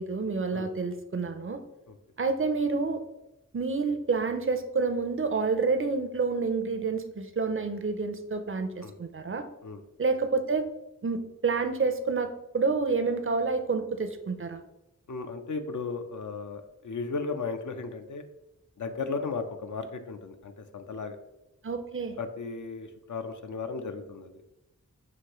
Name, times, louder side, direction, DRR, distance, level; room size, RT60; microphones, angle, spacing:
voice 1, 0.0-1.6 2.2-3.0 3.5-9.5 10.0-10.7 11.0-14.6 21.6-22.2, right 4 dB, 40° right, 8 dB, 0.5 m, -28 dB
voice 2, 15.1-18.2 18.8-21.2 22.2-24.4, left 4 dB, 70° left, 7 dB, 0.5 m, -35 dB
6.1 x 2.6 x 2.9 m, 0.94 s
wide cardioid pair, 40°, 31 cm